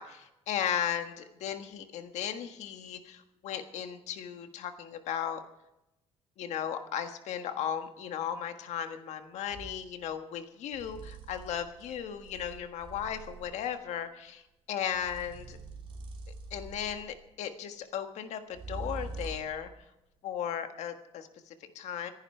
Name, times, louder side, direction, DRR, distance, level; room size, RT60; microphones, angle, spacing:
voice 1, 0.0-5.4 6.4-14.4 14.7-15.6 16.5-19.7 20.2-22.1, left 9 dB, 80° left, 7 dB, 1.5 m, -36 dB
sound 1, 9.5-9.8 10.7-13.7 14.9-17.2 18.5-19.6, right 3 dB, 50° right, 2.9 m, -44 dB
26.0 x 10.5 x 4.5 m, 0.91 s
cardioid pair, 125°, 12 cm